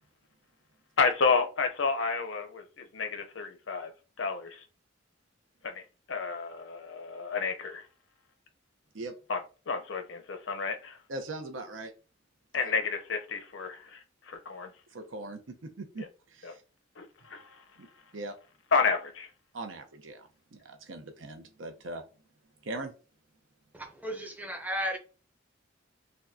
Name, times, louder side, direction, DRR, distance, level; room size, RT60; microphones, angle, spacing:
voice 1, 1.0-3.9 4.2-4.6 5.6-5.8 6.1-7.9 9.3-9.4 9.7-11.0 12.5-14.7 16.4-16.5 17.0-17.6 18.7-19.3, left 5 dB, 80° left, 0.6 m, -30 dB
voice 2, 11.1-11.9 12.5-12.7 14.9-16.6 17.8-17.9 18.1-18.4 19.5-22.0 22.6-22.9, right 2 dB, 85° right, 0.7 m, -40 dB
voice 3, 23.7-25.0, equal, 10° right, 0.6 m, -34 dB
5.1 x 2.2 x 2.6 m
head